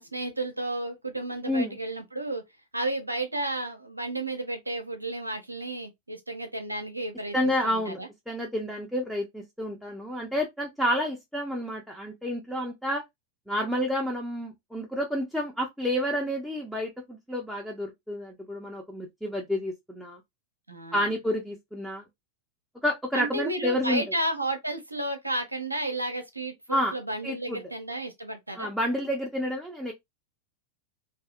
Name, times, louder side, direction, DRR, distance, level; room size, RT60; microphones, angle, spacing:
voice 1, 0.0-2.4 2.7-8.1 20.7-21.1 23.1-28.7, right 1 dB, 85° right, 0.5 m, -32 dB
voice 2, 1.4-1.7 7.3-13.0 13.5-20.2 20.9-22.0 22.8-24.0 26.7-26.9 27.2-27.6 28.5-29.9, equal, ahead, 0.6 m, -29 dB
2.7 x 2.3 x 2.4 m
figure-of-eight pair, 90°, 0 cm